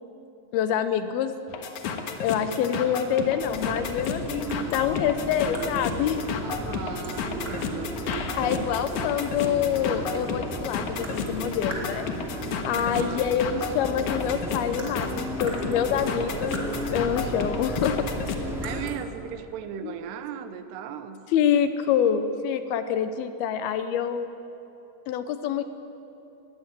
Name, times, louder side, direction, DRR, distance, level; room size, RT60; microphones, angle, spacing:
voice 1, 0.5-1.3 2.2-6.3 8.4-12.1 12.7-16.6 16.9-18.1 19.8-19.9 21.3-24.3 25.1-25.6, left 8 dB, 80° left, 10 dB, 2.6 m, -26 dB
sound 1, 1.5-18.4, left 6 dB, 60° left, 2.3 m, -32 dB
sound 2, 3.4-18.9, equal, ahead, 2.0 m, -35 dB
sound 3, 4.0-4.2 4.5-6.0 7.0-7.8 8.1-9.5 9.9-10.4 11.0-11.4 11.7-12.4 12.8-13.1 14.0-14.1 14.4-17.0 18.3-19.0, right 2 dB, 25° right, 3.2 m, -43 dB
voice 2, 6.4-8.6 12.7-13.3 18.6-21.2, right 8 dB, 85° right, 10 dB, 3.1 m, -37 dB
20.5 x 16.0 x 9.9 m, 2.9 s
omnidirectional pair, 4.8 m